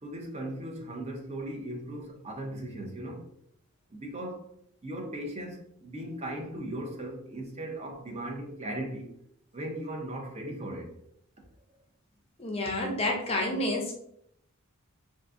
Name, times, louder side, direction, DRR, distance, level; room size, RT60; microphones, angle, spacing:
voice 1, 0.0-3.2 3.9-4.5 4.8-9.1 9.5-11.0, right 1 dB, 30° right, 0.6 m, -38 dB
voice 2, 12.4-13.9, left 1 dB, 25° left, 0.5 m, -29 dB
3.6 x 2.6 x 2.4 m
head